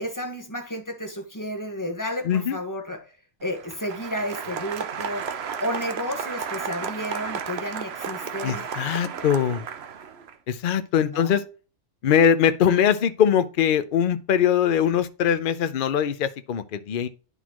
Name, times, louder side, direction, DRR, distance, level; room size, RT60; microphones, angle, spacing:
voice 1, 0.0-3.0 3.4-5.3 5.6-8.6 11.0-11.4, equal, 15° left, 1.3 m, -32 dB
voice 2, 2.2-2.6 8.4-9.6 10.5-11.4 12.0-17.1, left 8 dB, 50° left, 0.7 m, -22 dB
Applause, 3.4-10.3, right 7 dB, 60° right, 1.0 m, -33 dB
11.0 x 4.1 x 3.0 m
omnidirectional pair, 1.3 m